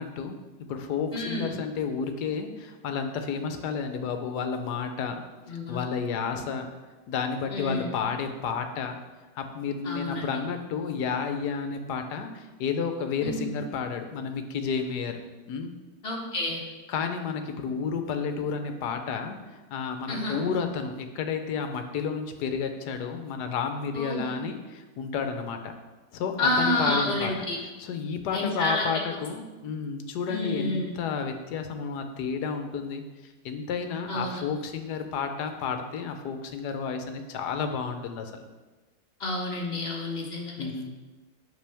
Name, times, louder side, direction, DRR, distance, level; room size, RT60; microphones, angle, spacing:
voice 1, 0.0-5.2 5.5-6.7 7.1-9.0 9.4-15.2 15.5-15.7 16.9-19.4 19.7-25.7 26.1-27.5 27.8-33.0 33.4-38.5 40.6-40.9, left 6 dB, 70° left, 6 dB, 1.2 m, -31 dB
voice 2, 1.1-1.5 5.5-5.8 7.5-7.9 9.8-10.4 13.2-13.4 16.0-16.6 20.1-20.4 23.9-24.3 26.4-27.6 28.3-28.9 30.3-30.9 34.1-34.4 39.2-40.7, left 1 dB, 40° left, -2 dB, 1.3 m, -29 dB
8.2 x 6.1 x 3.4 m, 1.2 s
omnidirectional pair, 1.9 m